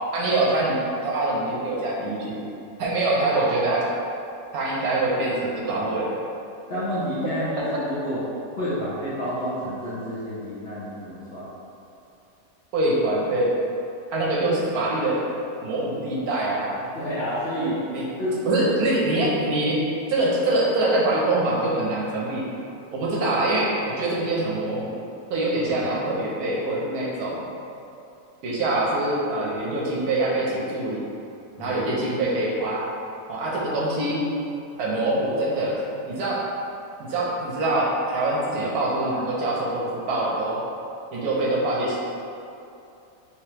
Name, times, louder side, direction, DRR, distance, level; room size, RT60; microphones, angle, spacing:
voice 1, 0.1-0.8 1.0-2.4 2.8-3.8 4.5-6.1 12.7-13.5 14.1-15.2 15.6-16.7 17.9-18.0 18.5-19.8 20.1-22.4 22.9-25.0 25.3-27.5 28.4-31.0 31.6-32.8 33.3-34.2 34.8-35.7 36.1-36.4 37.0-40.6 41.1-42.0, right 2 dB, 70° right, -4 dB, 1.1 m, -24 dB
voice 2, 6.7-8.2 8.6-11.5 16.9-17.8 18.2-18.7 25.7-25.8 31.6-31.8, equal, 50° left, -11 dB, 0.8 m, -29 dB
3.3 x 3.2 x 2.9 m, 2.7 s
omnidirectional pair, 1.7 m